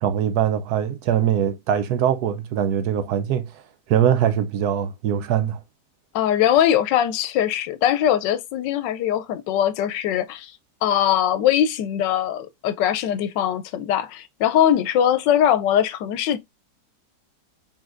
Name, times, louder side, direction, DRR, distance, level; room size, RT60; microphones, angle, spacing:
voice 1, 0.0-3.5 3.9-5.6, right 9 dB, 70° right, 1.0 m, -22 dB
voice 2, 6.1-10.5 10.8-16.4, left 10 dB, 90° left, 1.3 m, -21 dB
4.2 x 3.7 x 2.4 m
omnidirectional pair, 1.9 m